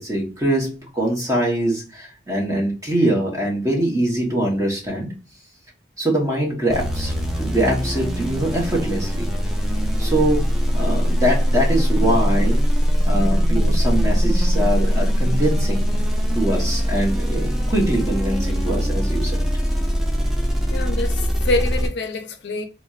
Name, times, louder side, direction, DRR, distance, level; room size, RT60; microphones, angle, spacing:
voice 1, 0.0-5.1 6.0-9.3 10.0-12.7 13.0-15.8 16.3-19.5, right 1 dB, 20° right, 0.9 m, -23 dB
sound 1, 6.7-21.9, equal, ahead, 0.4 m, -21 dB
voice 2, 20.7-22.6, left 2 dB, 65° left, 0.5 m, -25 dB
4.0 x 2.0 x 2.3 m
head